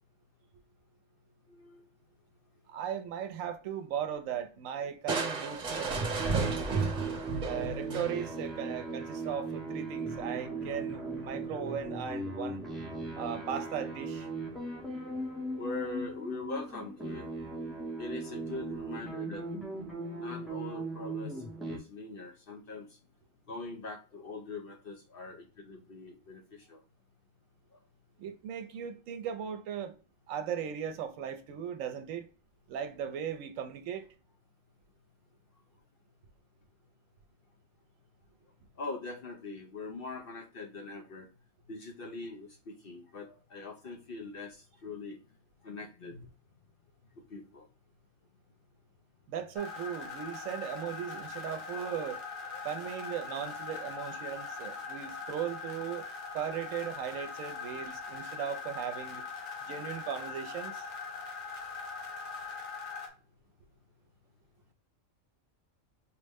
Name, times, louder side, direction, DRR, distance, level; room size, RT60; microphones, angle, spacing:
voice 1, 1.5-1.8 15.5-17.3 18.0-19.5 20.2-22.9 23.5-26.8 27.7-27.8 38.8-41.3 41.7-45.2 45.6-46.2 47.3-47.7, left 3 dB, 55° left, 0.7 m, -42 dB
voice 2, 2.7-6.0 6.3-6.9 7.4-12.6 13.2-14.3 28.2-29.9 30.3-32.3 32.7-34.1 49.3-52.2 52.6-56.1 56.3-59.3 59.6-60.8, right 8 dB, 80° right, 1.0 m, -37 dB
Crushing, 5.1-8.5, right 4 dB, 40° right, 1.0 m, -33 dB
sound 1, 6.2-21.8, right 2 dB, ahead, 0.6 m, -38 dB
sound 2, 49.6-63.1, left 5 dB, 85° left, 1.3 m, -41 dB
4.8 x 2.1 x 3.4 m
omnidirectional pair, 1.4 m